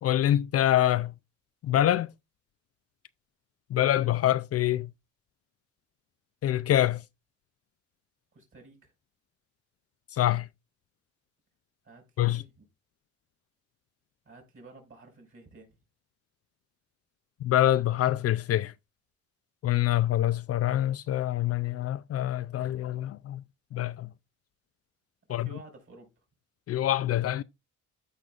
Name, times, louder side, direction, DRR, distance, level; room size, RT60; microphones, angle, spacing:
voice 1, 0.0-1.1 1.6-2.1 3.7-4.9 6.4-7.0 10.1-10.5 12.2-12.4 17.4-18.7 19.6-23.4 23.7-24.1 25.3-25.5 26.7-27.4, left 12 dB, 55° left, 0.4 m, -25 dB
voice 2, 8.3-8.9 11.8-12.7 14.3-15.8 25.3-26.1, right 2 dB, 45° right, 5.5 m, -52 dB
14.5 x 5.2 x 2.4 m
cardioid pair, 90°, 30 cm